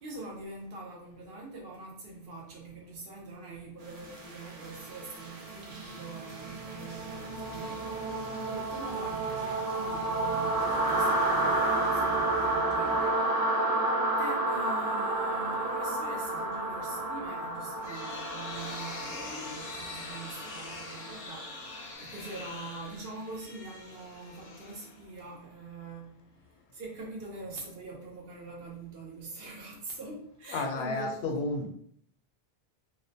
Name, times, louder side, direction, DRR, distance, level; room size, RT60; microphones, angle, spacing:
voice 1, 0.0-13.3 14.2-21.5 22.0-26.3 26.7-31.5, right 3 dB, 75° right, -1 dB, 1.0 m, -44 dB
sound 1, 3.9-21.7, right 2 dB, 50° right, 0.5 m, -31 dB
sound 2, 17.5-25.3, left 3 dB, 55° left, 0.6 m, -43 dB
voice 2, 30.5-31.7, left 2 dB, 90° left, 3 dB, 0.8 m, -31 dB
2.4 x 2.1 x 2.6 m, 0.64 s
omnidirectional pair, 1.0 m